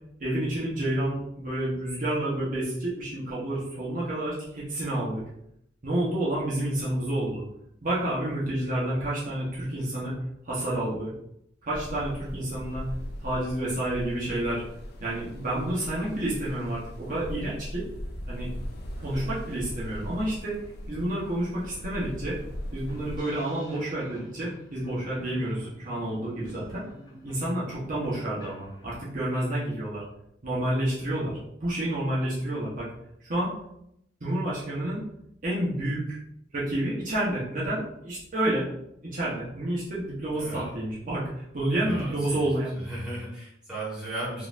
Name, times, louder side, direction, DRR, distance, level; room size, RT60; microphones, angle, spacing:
voice 1, 0.2-5.2 5.8-7.4 7.8-10.1 10.5-11.1 11.7-12.8 13.2-14.6 15.0-17.8 18.3-18.5 19.0-20.6 20.9-22.4 22.7-26.8 27.2-30.0 30.4-32.9 33.3-33.5 34.2-35.0 35.4-36.2 36.5-38.7 39.0-41.2 41.5-42.7, right 1 dB, 45° right, -7 dB, 0.8 m, -29 dB
sound 1, 11.7-23.2, equal, 60° left, 0.5 m, -39 dB
sound 2, 20.8-20.9 21.2-29.2, right 1 dB, 25° left, 1.2 m, -48 dB
voice 2, 40.3-40.7 41.7-42.5 42.8-44.5, right 1 dB, 5° right, -9 dB, 1.4 m, -36 dB
3.8 x 2.5 x 2.5 m, 0.76 s
head